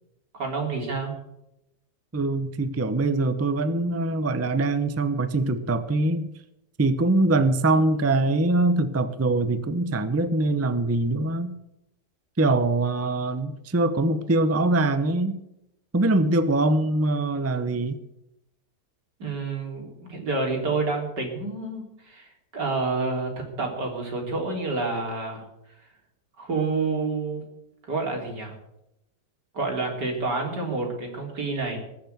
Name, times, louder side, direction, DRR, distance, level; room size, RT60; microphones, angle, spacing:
voice 1, 0.3-1.1 19.2-25.4 26.4-27.4 27.9-28.5 29.5-31.8, right 3 dB, 85° right, 1 dB, 4.2 m, -28 dB
voice 2, 2.1-6.3 6.8-11.5 12.4-15.4 15.9-18.0, right 2 dB, 15° right, 11 dB, 0.6 m, -23 dB
20.5 x 6.9 x 7.9 m, 0.84 s
omnidirectional pair, 1.8 m